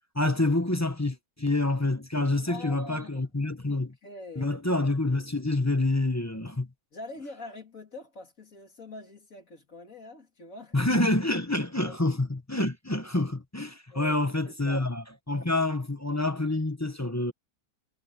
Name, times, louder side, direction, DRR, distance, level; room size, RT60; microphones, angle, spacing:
voice 1, 0.1-3.9 4.4-6.7 10.7-17.3, left 2 dB, 10° left, 0.8 m, -27 dB
voice 2, 2.5-4.6 6.9-10.8 11.9-12.2 13.9-14.2 14.4-14.9, left 2 dB, 45° left, 3.0 m, -45 dB
omnidirectional pair, 1.9 m